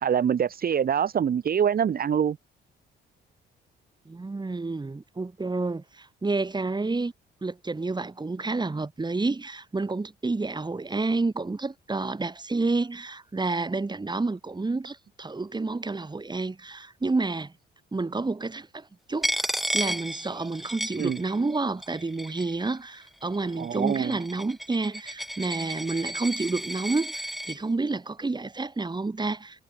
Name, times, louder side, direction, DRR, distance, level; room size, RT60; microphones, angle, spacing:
voice 1, 0.0-2.4 21.0-21.2 23.6-24.1, right 8 dB, 50° right, 1.5 m, -24 dB
voice 2, 4.1-7.1 7.4-17.5 17.9-29.6, right 3 dB, 20° right, 5.8 m, -29 dB
Coin (dropping), 19.2-21.6 21.8-22.6 23.3-27.6, equal, ahead, 4.6 m, -33 dB
cardioid pair, 90°, 20 cm